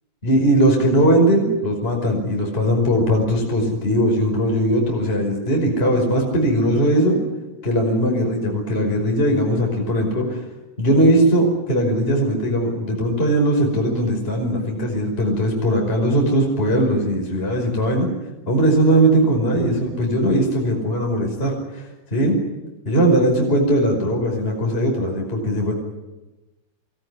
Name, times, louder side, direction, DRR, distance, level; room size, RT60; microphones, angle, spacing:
voice 1, 0.2-7.2 7.6-10.4 10.8-18.1 18.5-21.8 22.1-22.4 22.9-25.7, right 1 dB, 15° left, 1 dB, 5.3 m, -19 dB
25.0 x 21.5 x 9.9 m, 1.1 s
omnidirectional pair, 5.0 m